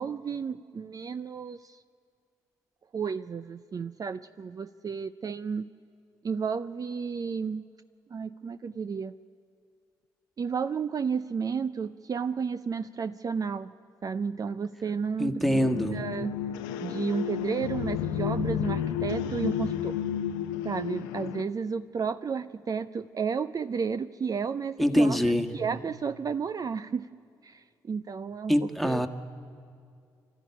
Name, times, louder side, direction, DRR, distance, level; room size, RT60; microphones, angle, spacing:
voice 1, 0.0-1.8 2.9-5.7 6.2-7.6 8.1-9.1 10.4-13.7 14.0-16.4 16.8-20.0 20.6-27.1 27.4-28.5 28.8-29.0, right 6 dB, 40° right, 12 dB, 0.5 m, -32 dB
voice 2, 15.2-16.0 24.8-25.5 28.5-29.1, equal, ahead, 5 dB, 1.6 m, -24 dB
sound 1, 15.5-21.4, left 9 dB, 80° left, 0.7 m, -32 dB
25.5 x 13.0 x 10.0 m, 2.3 s
hypercardioid pair, 45°, 10 cm